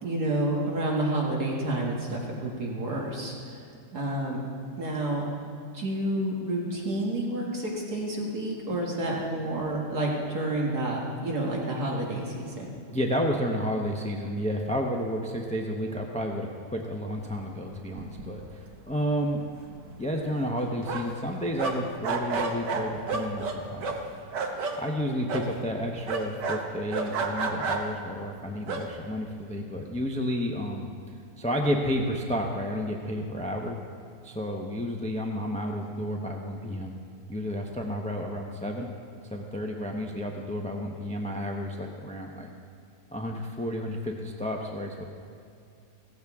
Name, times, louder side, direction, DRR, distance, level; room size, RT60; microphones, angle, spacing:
voice 1, 0.0-3.7 3.9-4.4 4.8-5.2 5.7-12.7, right 1 dB, 65° right, -2 dB, 2.1 m, -29 dB
voice 2, 12.9-19.4 20.0-23.9 24.8-30.9 31.4-33.8 34.2-36.9 37.3-38.9 39.3-42.5 43.1-45.0, equal, 10° left, 1 dB, 0.4 m, -31 dB
sound 1, 17.7-17.8 18.0-18.6 18.9-19.0 19.4-21.3 21.6-24.8 25.3-25.5 26.1-28.0 28.6-28.9, right 4 dB, 90° right, 1.8 m, -31 dB
17.0 x 14.5 x 3.6 m, 2.5 s
omnidirectional pair, 1.8 m